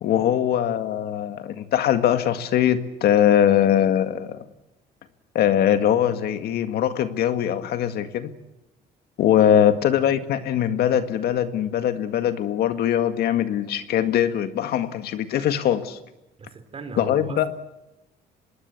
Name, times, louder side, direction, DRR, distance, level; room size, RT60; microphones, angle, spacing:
voice 1, 0.0-4.4 5.3-8.3 9.2-16.0 17.0-17.5, left 10 dB, 70° left, 9 dB, 2.0 m, -21 dB
voice 2, 16.4-17.5, right 4 dB, 35° right, 9 dB, 4.2 m, -39 dB
26.0 x 21.0 x 8.5 m, 0.93 s
cardioid pair, 110°, 17 cm